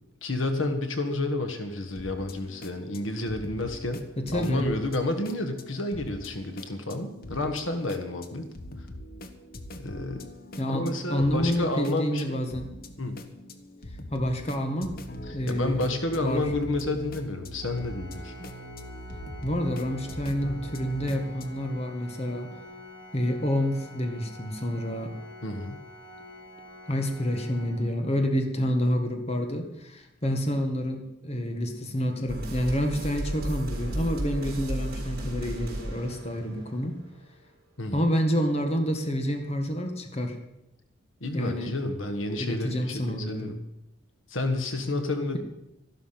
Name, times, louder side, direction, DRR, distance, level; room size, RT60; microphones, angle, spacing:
voice 1, 0.2-4.1 4.3-8.4 9.8-10.2 10.7-12.4 13.0-13.2 15.5-18.3 25.4-25.8 37.8-38.1 41.2-43.5 44.3-45.4, left 2 dB, 80° left, 7 dB, 1.5 m, -30 dB
sound 1, 1.9-21.5, left 1 dB, 45° left, 1.1 m, -42 dB
voice 2, 4.2-4.7 10.6-12.7 14.1-15.0 15.3-15.9 16.2-16.5 19.4-22.5 23.1-25.1 26.9-37.0 37.9-40.4 41.3-41.7 42.4-43.6, equal, 30° left, 4 dB, 1.7 m, -28 dB
Organ, 17.6-28.5, left 1 dB, 10° left, 6.2 m, -47 dB
sound 2, 32.3-37.3, right 1 dB, 50° right, 4.1 m, -34 dB
13.0 x 12.0 x 5.9 m, 0.88 s
head